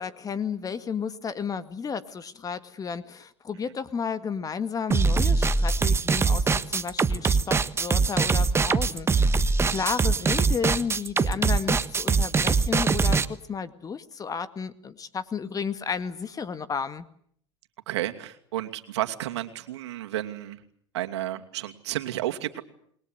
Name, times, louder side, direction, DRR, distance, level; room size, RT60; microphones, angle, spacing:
voice 1, 0.0-17.1, left 6 dB, 25° left, 12 dB, 2.0 m, -32 dB
sound 1, 4.9-13.3, right 4 dB, 15° right, 1.3 m, -22 dB
voice 2, 17.9-20.6 20.9-22.6, right 14 dB, 75° right, 6 dB, 2.6 m, -32 dB
28.5 x 21.5 x 8.0 m, 0.65 s
hypercardioid pair, 100°, 15 cm